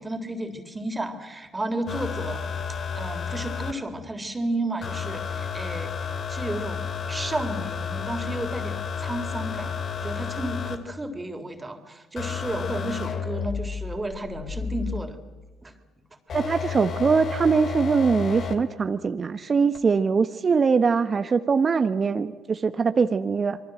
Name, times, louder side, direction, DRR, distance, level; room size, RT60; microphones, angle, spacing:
voice 1, 0.0-2.4 2.9-5.9 6.3-15.2 15.6-15.7, right 1 dB, 20° right, 7 dB, 3.7 m, -32 dB
sound 1, 1.9-3.7 4.8-10.8 12.2-15.1 16.3-18.5 19.7-19.8, left 6 dB, 50° left, 3.0 m, -31 dB
voice 2, 16.3-23.6, right 5 dB, 40° right, 10 dB, 1.1 m, -22 dB
27.5 x 23.0 x 7.9 m, 1.2 s
hypercardioid pair, 55°, 0 cm